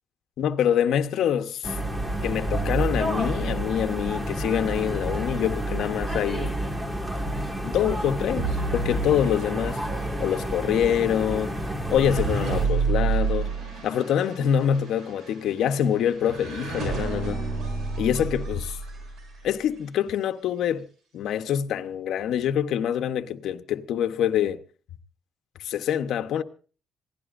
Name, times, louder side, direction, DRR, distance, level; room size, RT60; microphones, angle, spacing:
voice 1, 0.4-1.7 2.2-6.6 7.6-9.8 10.2-11.6 11.9-13.5 13.8-17.4 18.0-18.8 19.4-20.9 21.1-24.6 25.6-26.4, left 9 dB, 80° left, 1.0 m, -25 dB
sound 1, 1.6-12.7, right 1 dB, 15° right, 2.1 m, -29 dB
sound 2, 8.4-19.7, right 4 dB, 70° right, 6.8 m, -30 dB
26.5 x 17.0 x 2.6 m
cardioid pair, 90°, 0 cm